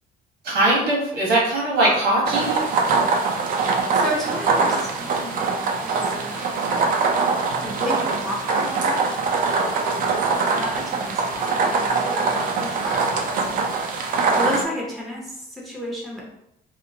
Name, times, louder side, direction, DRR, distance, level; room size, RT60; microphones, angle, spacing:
voice 1, 0.4-2.6, right 2 dB, 75° right, -4 dB, 1.3 m, -20 dB
sound 1, 2.3-14.6, right 4 dB, 55° right, 0.4 m, -23 dB
voice 2, 3.9-6.6 7.6-9.0 9.4-9.7 10.0-10.3 10.6-13.7 14.3-16.2, equal, ahead, -3 dB, 0.6 m, -32 dB
2.9 x 2.0 x 2.6 m, 0.82 s
cardioid pair, 110°, 17 cm